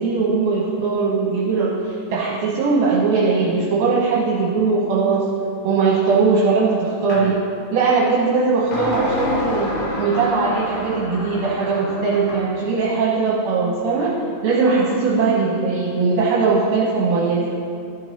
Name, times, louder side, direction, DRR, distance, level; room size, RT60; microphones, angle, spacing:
voice 1, 0.0-5.3 5.6-7.4 7.7-9.7 10.0-14.1 14.4-17.5, right 4 dB, 70° right, -6 dB, 2.6 m, -20 dB
sound 1, 7.1-7.3 8.7-12.5, left 2 dB, 60° left, 2.2 m, -28 dB
14.0 x 4.7 x 4.4 m, 2.4 s
omnidirectional pair, 5.0 m